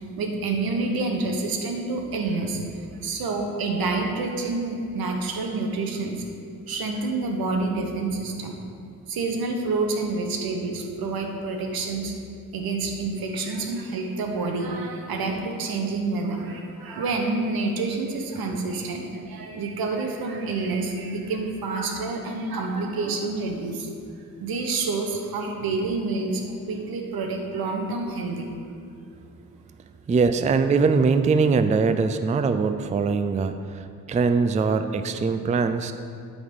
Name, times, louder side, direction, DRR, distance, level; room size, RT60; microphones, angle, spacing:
voice 1, 0.2-6.2 6.7-8.6 9.1-12.1 12.5-23.9 24.4-28.5, right 3 dB, 80° right, 3 dB, 1.1 m, -28 dB
voice 2, 30.1-33.8 34.1-35.9, right 4 dB, 20° right, 10 dB, 0.3 m, -22 dB
11.5 x 4.0 x 5.3 m, 2.4 s
cardioid pair, 80°, 35 cm